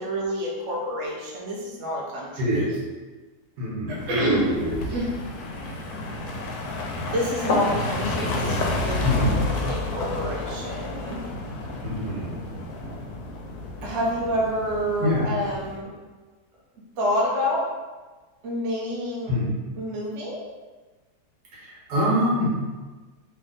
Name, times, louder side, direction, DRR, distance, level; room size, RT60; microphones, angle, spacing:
voice 1, 0.0-2.4 3.9-4.5 4.9-5.1 7.1-11.3 13.8-15.9 17.0-17.7 18.4-19.3 19.8-20.4, equal, 55° right, -4 dB, 1.0 m, -28 dB
voice 2, 2.4-2.8 3.6-4.8 9.0-9.4 11.8-12.3 15.0-15.3 19.3-19.5 21.5-22.5, equal, 75° right, -6 dB, 1.7 m, -25 dB
sound 1, 4.0-15.8, left 2 dB, 75° left, 1.1 m, -30 dB
3.4 x 2.6 x 3.9 m, 1.3 s
omnidirectional pair, 1.7 m